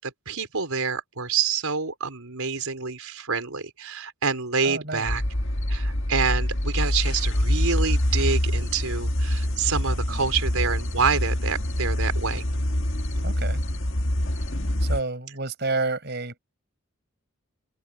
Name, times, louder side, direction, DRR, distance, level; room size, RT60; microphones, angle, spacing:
voice 1, 0.0-5.2 5.7-12.4, right 5 dB, 85° right, 4.5 m, -27 dB
voice 2, 4.6-5.1 10.1-10.2 13.2-13.6 14.8-16.4, right 3 dB, 50° right, 4.8 m, -30 dB
sound 1, 5.1-15.0, left 1 dB, 60° left, 2.0 m, -25 dB
head